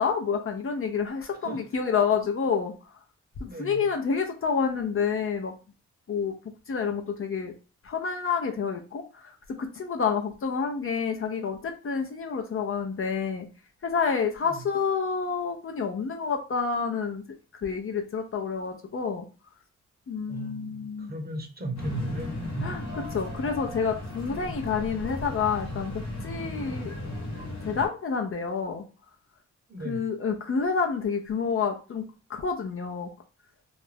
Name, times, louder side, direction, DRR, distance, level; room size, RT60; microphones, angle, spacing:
voice 1, 0.0-2.7 3.4-5.5 6.1-6.3 6.7-7.5 7.8-9.3 9.6-13.5 13.8-17.2 17.6-19.3 20.1-21.1 22.6-26.9 27.6-28.8 29.8-32.0 32.3-33.1, left 6 dB, 45° left, 0.6 m, -28 dB
voice 2, 3.4-3.9 14.5-14.7 20.3-22.7 24.4-24.6 29.7-30.1, right 2 dB, 30° right, 0.8 m, -36 dB
sound 1, 21.8-27.9, left 1 dB, 65° left, 1.1 m, -35 dB
2.5 x 2.1 x 3.3 m
cardioid pair, 60°, 30 cm